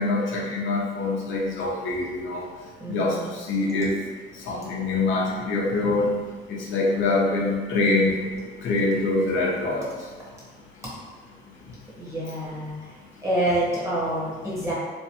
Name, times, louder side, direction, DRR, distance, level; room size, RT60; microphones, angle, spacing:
voice 1, 0.0-2.4 2.9-3.2 3.5-3.9 4.5-6.1 6.5-8.2 8.6-9.8, left 2 dB, 75° left, -3 dB, 0.7 m, -24 dB
voice 2, 2.8-3.3 12.0-12.7 13.2-14.7, right 1 dB, 15° right, -7 dB, 1.2 m, -27 dB
3.1 x 2.1 x 2.9 m, 1.3 s
cardioid pair, 90°, 20 cm